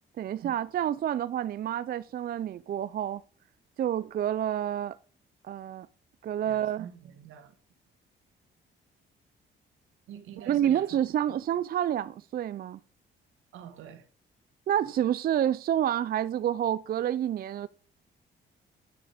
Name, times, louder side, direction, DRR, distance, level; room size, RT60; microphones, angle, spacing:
voice 1, 0.2-3.2 3.8-5.0 5.4-5.9 6.2-6.9 10.4-12.8 14.7-17.7, right 10 dB, 50° right, 0.4 m, -28 dB
voice 2, 6.5-7.5 10.1-11.0 13.5-14.1, right 9 dB, 85° right, 1.5 m, -46 dB
10.0 x 6.4 x 5.1 m
cardioid pair, 90°, 20 cm